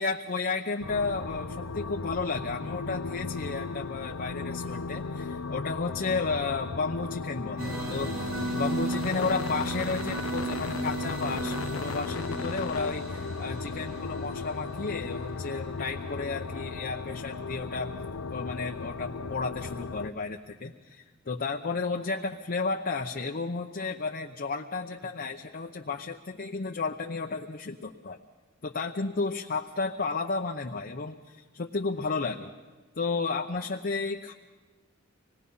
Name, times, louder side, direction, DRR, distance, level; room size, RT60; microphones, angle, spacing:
voice 1, 0.0-17.9 18.3-28.2 28.6-32.5 33.0-34.3, left 4 dB, 45° left, 2 dB, 0.8 m, -33 dB
sound 1, 0.8-20.1, left 4 dB, 90° left, 0.7 m, -36 dB
sound 2, 7.6-16.4, right 2 dB, 70° right, 4.2 m, -36 dB
25.5 x 19.5 x 5.6 m, 1.3 s
head